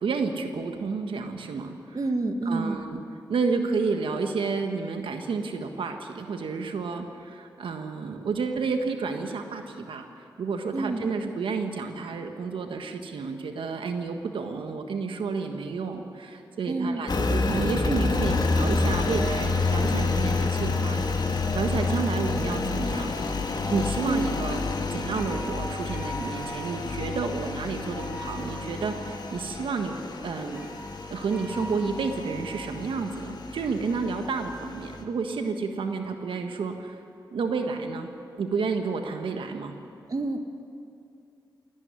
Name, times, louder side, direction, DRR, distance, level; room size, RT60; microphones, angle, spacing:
voice 1, 0.0-2.0 2.4-3.0 3.3-10.1 10.4-21.0 21.5-23.1 23.7-24.6 24.9-30.7 31.1-37.0 37.3-38.1 38.4-39.7, right 4 dB, 80° right, 5 dB, 1.5 m, -30 dB
voice 2, 1.9-2.8 10.7-11.0 16.7-17.0 21.9-22.5 24.0-24.4 40.1-40.4, right 2 dB, 45° right, 7 dB, 1.6 m, -29 dB
Engine, 17.1-35.0, left 3 dB, 55° left, 2.1 m, -29 dB
sound 1, 25.1-27.3 28.0-29.2 30.5-32.7, right 1 dB, 20° right, 3.9 m, -42 dB
18.5 x 17.0 x 9.7 m, 2.5 s
cardioid pair, 50°, 9 cm